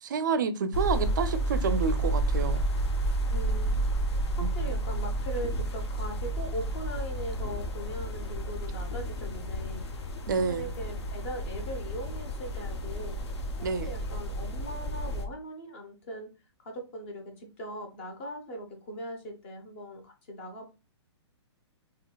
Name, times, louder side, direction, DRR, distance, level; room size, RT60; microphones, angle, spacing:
voice 1, 0.0-2.6 4.4-4.5 10.3-10.7 13.6-13.9, right 5 dB, 40° right, 0.4 m, -29 dB
sound 1, 0.7-15.3, right 1 dB, 65° left, 0.7 m, -31 dB
voice 2, 3.3-3.9 4.4-10.0 10.4-13.3 13.8-16.3 16.6-20.7, right 1 dB, 25° left, 0.7 m, -40 dB
3.8 x 2.8 x 2.2 m
hypercardioid pair, 175°, 15 cm